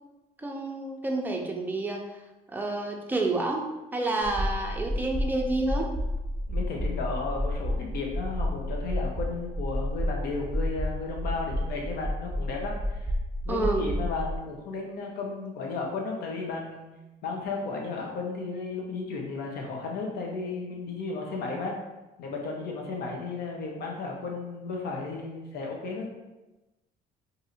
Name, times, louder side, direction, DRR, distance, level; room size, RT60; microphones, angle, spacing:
voice 1, 0.4-2.0 2.5-3.7 3.9-5.9 13.5-14.0, right 2 dB, 10° right, 1 dB, 0.5 m, -29 dB
sound 1, 4.2-14.4, equal, 10° left, 0.9 m, -31 dB
voice 2, 6.5-13.1 13.4-16.9 17.2-21.8 22.2-26.1, left 3 dB, 70° left, 0 dB, 0.8 m, -34 dB
2.7 x 2.5 x 4.2 m, 1.1 s
cardioid pair, 110°, 17 cm